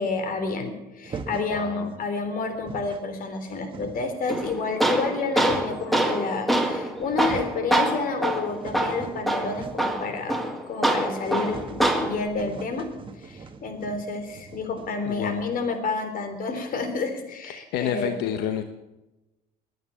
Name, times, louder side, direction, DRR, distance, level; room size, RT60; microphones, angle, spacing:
voice 1, 0.0-12.9 13.2-18.2, left 4 dB, 55° left, 8 dB, 3.6 m, -30 dB
sound 1, 1.0-1.6 2.2-2.3 2.5-3.1 3.4-4.3 5.0-5.9 6.7-6.8 7.0-7.7 8.1-10.0 10.3-10.4 10.7-10.8 11.2-15.7, right 4 dB, 30° right, 1.6 m, -41 dB
voice 2, 1.5-1.9 15.1-15.5 17.5-18.6, left 9 dB, 90° left, 7 dB, 1.1 m, -29 dB
Tools, 4.3-12.3, right 1 dB, ahead, 2.0 m, -25 dB
21.5 x 9.5 x 7.1 m, 0.99 s
cardioid pair, 110°, 17 cm